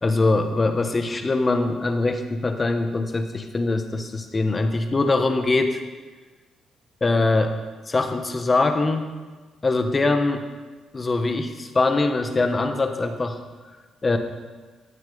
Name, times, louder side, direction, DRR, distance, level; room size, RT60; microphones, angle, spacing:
voice 1, 0.0-5.8 7.0-7.5 7.9-9.0 9.6-10.4 10.9-13.4 14.0-14.2, left 3 dB, 30° left, 6 dB, 1.3 m, -22 dB
15.0 x 8.9 x 4.0 m, 1.3 s
cardioid pair, 90°, 0 cm